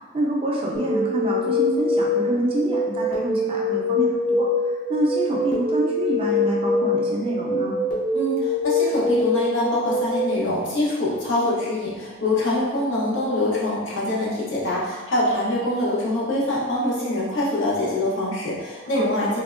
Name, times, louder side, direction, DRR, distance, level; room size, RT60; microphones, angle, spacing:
voice 1, 0.1-7.7 18.9-19.3, right 1 dB, 30° right, -3 dB, 0.4 m, -26 dB
sound 1, 0.7-10.3, left 2 dB, 45° left, 0.6 m, -24 dB
voice 2, 8.1-19.4, left 1 dB, 80° left, -6 dB, 0.8 m, -24 dB
3.3 x 2.1 x 2.4 m, 1.3 s
head